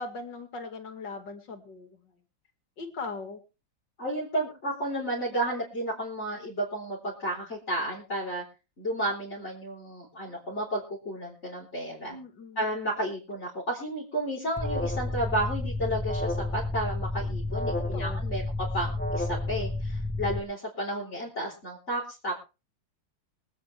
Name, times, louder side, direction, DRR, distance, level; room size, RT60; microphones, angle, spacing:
voice 1, 0.0-2.1 2.8-3.4 12.1-12.7 17.8-18.2, left 3 dB, 65° left, 6 dB, 2.8 m, -39 dB
voice 2, 4.0-8.4 8.8-12.2 12.6-18.4 18.7-22.4, right 1 dB, 35° left, -5 dB, 4.5 m, -32 dB
Alarm, 14.6-20.4, left 2 dB, 15° left, 0.4 m, -31 dB
24.5 x 9.0 x 3.5 m, 0.31 s
omnidirectional pair, 2.1 m